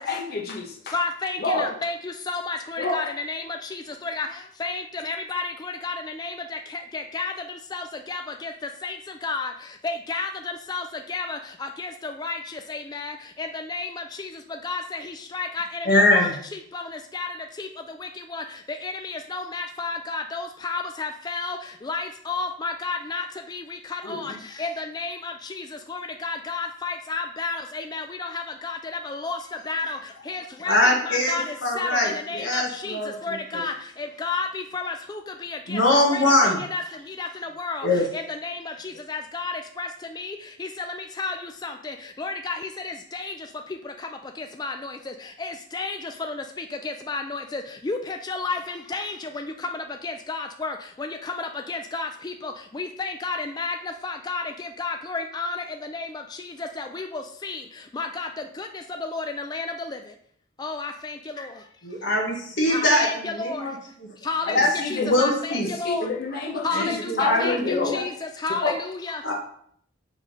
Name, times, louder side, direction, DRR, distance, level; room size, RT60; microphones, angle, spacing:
voice 1, 0.0-0.9 1.4-1.6 2.8-3.0 24.0-24.4 64.4-65.1 65.6-66.9 67.2-68.0 68.6-68.7, left 3 dB, 50° left, -2 dB, 1.0 m, -28 dB
voice 2, 0.9-7.3 7.7-8.5 8.8-9.0 9.2-9.5 9.8-14.3 14.6-17.7 18.0-18.4 18.8-29.4 29.7-30.0 30.3-37.9 38.1-43.3 43.8-44.1 44.4-56.1 56.4-57.6 57.9-58.3 58.6-58.7 59.0-60.0 60.6-61.5 62.7-63.6 64.2-66.1 66.6-69.2, left 3 dB, 20° left, 5 dB, 0.3 m, -32 dB
voice 3, 15.8-16.3 30.6-33.1 33.5-33.6 35.7-36.6 37.8-38.0 62.0-63.1 63.3-63.7 64.5-64.7 65.0-65.7 66.7-68.0 69.2-69.3, left 1 dB, 65° left, -2 dB, 1.3 m, -22 dB
6.3 x 3.6 x 5.1 m, 0.63 s
head